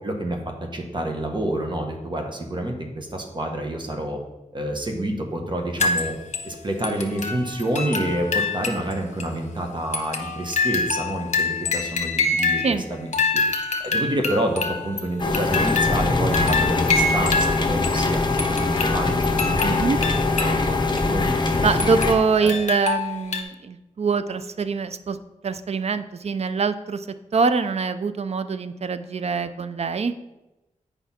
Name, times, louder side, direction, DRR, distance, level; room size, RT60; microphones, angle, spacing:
voice 1, 0.0-4.2 4.5-6.1 6.4-13.1 13.8-21.6 22.4-22.5, right 1 dB, 35° right, 2 dB, 1.5 m, -28 dB
sound 1, 5.8-6.5 6.8-8.9 9.2-9.3 9.9-12.8 13.1-18.0 18.4-20.6 21.0-21.1 21.8-23.4, left 3 dB, 60° left, 1.0 m, -26 dB
sound 2, 15.2-22.1, left 3 dB, 35° left, 1.0 m, -22 dB
voice 2, 19.6-20.0 21.6-25.2 25.4-27.1 27.3-30.1, right 5 dB, 55° right, 12 dB, 0.5 m, -24 dB
8.2 x 5.4 x 4.3 m, 0.99 s
wide cardioid pair, 80°, 13 cm